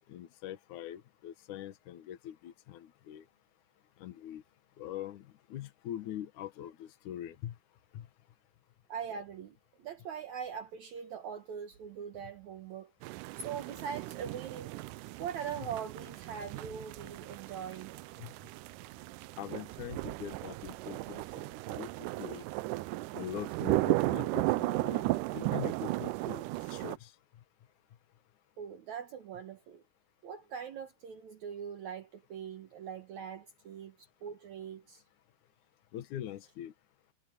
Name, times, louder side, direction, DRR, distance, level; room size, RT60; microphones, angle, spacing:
voice 1, 0.1-3.3 4.0-4.4 4.8-7.6 7.9-8.1 18.2-18.3 19.4-21.9 22.2-22.4 23.1-25.1 25.3-26.4 26.7-27.1 35.9-36.7, left 11 dB, 65° left, 2.6 m, -43 dB
voice 2, 8.9-12.9 13.3-14.7 15.2-18.0 28.6-29.8 30.2-35.0, right 7 dB, 60° right, 2.3 m, -42 dB
sound 1, 13.0-27.0, right 19 dB, 85° right, 1.8 m, -35 dB
omnidirectional pair, 4.2 m